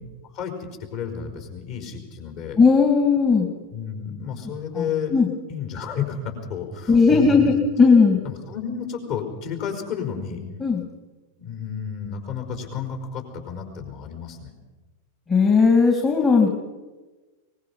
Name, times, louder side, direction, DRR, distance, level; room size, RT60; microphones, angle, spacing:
voice 1, 0.2-2.6 3.7-5.1 5.5-7.5 8.2-10.4 11.4-14.5, left 7 dB, 45° left, 4 dB, 5.0 m, -31 dB
voice 2, 2.6-3.5 4.8-5.3 6.9-8.2 10.6-10.8 15.3-16.5, left 4 dB, 20° left, 2 dB, 2.3 m, -17 dB
23.0 x 20.5 x 5.6 m, 1.2 s
figure-of-eight pair, 90°, 0 cm